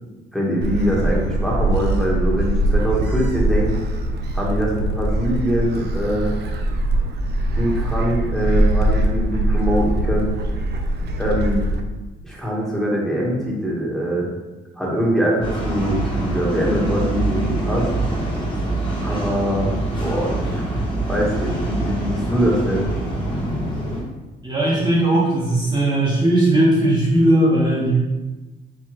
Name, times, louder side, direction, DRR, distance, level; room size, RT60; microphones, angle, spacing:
voice 1, 0.3-3.8 4.3-6.3 7.5-10.4 11.2-11.6 12.2-14.3 14.8-17.9 19.0-20.7 21.1-22.9, equal, ahead, -5 dB, 1.2 m, -23 dB
Gull seagull, 0.6-11.8, right 1 dB, 55° right, 0.6 m, -22 dB
sound 1, 15.4-24.0, right 2 dB, 25° left, 1.3 m, -24 dB
voice 2, 24.4-28.0, right 1 dB, 20° right, -6 dB, 1.0 m, -17 dB
4.6 x 3.3 x 3.0 m, 1.1 s
cardioid pair, 90°, 20 cm